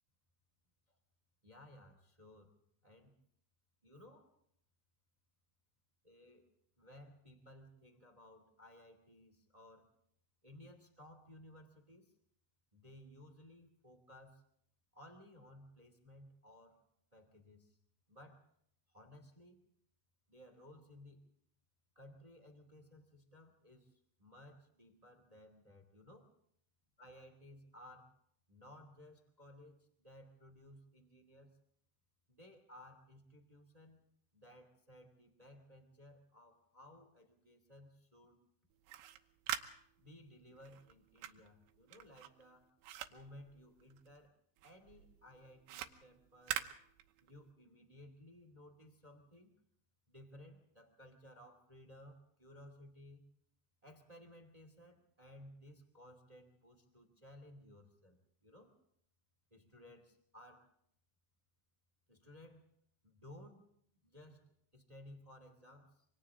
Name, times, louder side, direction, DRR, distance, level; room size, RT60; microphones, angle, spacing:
voice 1, 1.4-2.5 2.8-3.1 3.8-4.3 6.0-6.5 6.8-9.9 10.4-12.1 12.7-14.4 14.9-16.8 17.1-17.8 18.1-18.4 18.9-19.6 20.3-21.2 21.9-26.3 27.0-28.2 28.5-31.6 32.3-34.0 34.3-38.4 40.0-42.7 43.1-44.4 44.6-46.6 47.2-49.5 50.1-53.3 53.8-58.7 59.5-60.7 62.1-62.6 63.0-63.6 64.0-66.0, left 1 dB, 20° right, 6 dB, 1.0 m, -58 dB
sound 1, 38.7-44.3 44.6-47.5, right 12 dB, 80° right, 3.2 m, -45 dB
28.0 x 25.0 x 3.8 m, 0.67 s
omnidirectional pair, 5.6 m